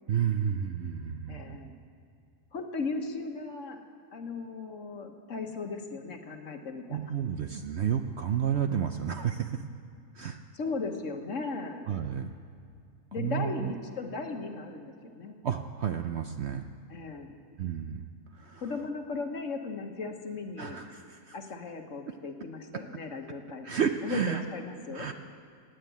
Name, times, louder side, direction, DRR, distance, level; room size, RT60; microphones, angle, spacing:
voice 1, 0.1-1.6 6.9-9.6 10.1-10.4 11.9-12.3 13.2-13.7 15.4-16.6 17.6-18.1 18.3-18.6 20.6-21.3 23.6-24.4 24.9-25.1, right 8 dB, 60° right, 7 dB, 0.7 m, -31 dB
voice 2, 1.3-1.8 2.5-3.8 4.1-7.1 10.5-11.9 13.1-15.4 16.9-17.4 18.6-20.8 21.3-23.7 24.0-25.1, left 4 dB, 55° left, 5 dB, 1.5 m, -37 dB
17.0 x 9.1 x 9.2 m, 2.3 s
omnidirectional pair, 1.6 m